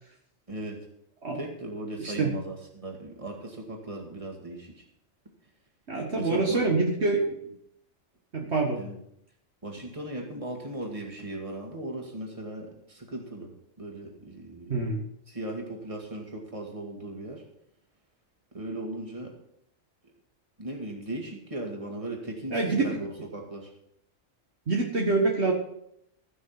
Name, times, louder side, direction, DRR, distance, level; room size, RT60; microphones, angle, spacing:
voice 1, 0.5-0.9 1.3-4.9 6.1-6.6 8.8-9.0 9.6-15.0 15.3-17.4 18.5-19.4 20.6-23.7, right 1 dB, 25° right, 1 dB, 2.2 m, -37 dB
voice 2, 2.0-2.3 5.9-7.6 8.3-8.8 14.7-15.0 22.5-23.0 24.7-25.5, right 3 dB, 55° right, 0 dB, 1.7 m, -26 dB
15.0 x 6.3 x 5.9 m, 0.74 s
omnidirectional pair, 1.4 m